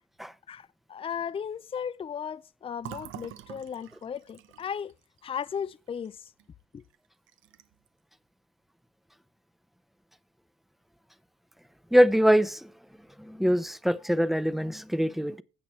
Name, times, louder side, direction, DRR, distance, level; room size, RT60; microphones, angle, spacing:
voice 1, 0.5-4.9 5.2-6.2 6.7-6.8, left 7 dB, 30° left, 0.4 m, -36 dB
Fill (with liquid), 2.8-6.5 6.8-7.0 7.3-7.9, right 11 dB, 80° right, 0.9 m, -47 dB
voice 2, 11.9-12.7 13.2-15.4, equal, ahead, 0.7 m, -23 dB
16.0 x 6.0 x 3.1 m
cardioid pair, 90°, 20 cm